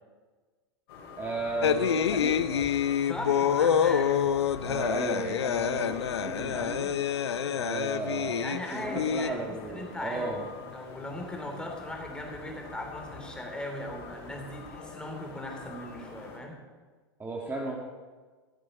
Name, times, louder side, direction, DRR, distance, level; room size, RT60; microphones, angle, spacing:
sound 1, 0.9-16.4, left 4 dB, 65° left, 3.4 m, -46 dB
voice 1, 1.2-2.7 4.6-7.0 7.5-10.4 17.2-17.8, right 2 dB, 15° right, -1 dB, 1.7 m, -34 dB
sound 2, 1.6-9.3, left 8 dB, 85° left, 0.6 m, -27 dB
voice 2, 3.0-4.3 8.4-9.4 9.7-10.4 10.6-16.6, left 1 dB, 5° left, 1 dB, 3.0 m, -38 dB
15.0 x 7.6 x 5.4 m, 1.4 s
hypercardioid pair, 110°, 14 cm